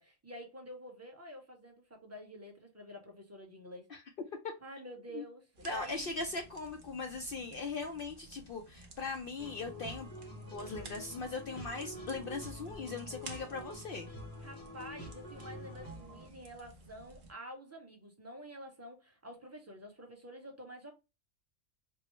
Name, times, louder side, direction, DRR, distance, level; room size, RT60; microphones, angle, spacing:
voice 1, 0.0-3.9 4.6-6.2 14.4-20.9, equal, 15° right, 0.8 m, -49 dB
sound 1, 5.5-17.3, right 3 dB, 50° right, 0.8 m, -55 dB
voice 2, 5.6-10.1 10.5-14.1, left 3 dB, 60° left, 0.6 m, -39 dB
sound 2, 9.4-16.3, left 1 dB, 20° left, 0.8 m, -47 dB
4.5 x 2.1 x 3.0 m
omnidirectional pair, 1.3 m